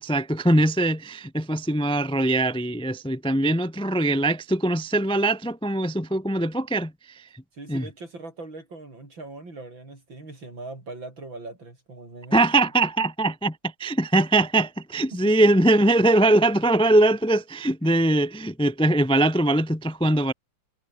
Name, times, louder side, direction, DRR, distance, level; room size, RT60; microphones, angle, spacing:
voice 1, 0.0-7.3 7.7-7.8 12.3-20.3, right 1 dB, 5° left, 0.4 m, -22 dB
voice 2, 7.5-12.4 15.1-15.3 17.8-18.0, right 2 dB, 85° right, 7.6 m, -40 dB
omnidirectional pair, 2.0 m